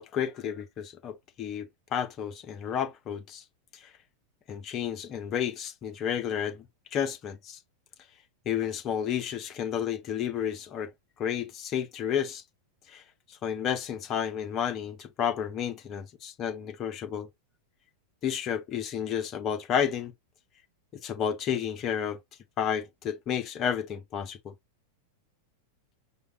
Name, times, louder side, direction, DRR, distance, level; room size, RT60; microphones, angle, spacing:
voice 1, 0.0-3.4 3.7-3.9 4.5-6.7 6.9-7.6 8.5-10.9 11.2-12.4 12.9-13.0 13.3-17.3 18.2-20.1 21.0-22.2 22.6-24.5, left 8 dB, 30° left, 0.8 m, -31 dB
4.9 x 2.3 x 2.8 m
figure-of-eight pair, 90°, 0 cm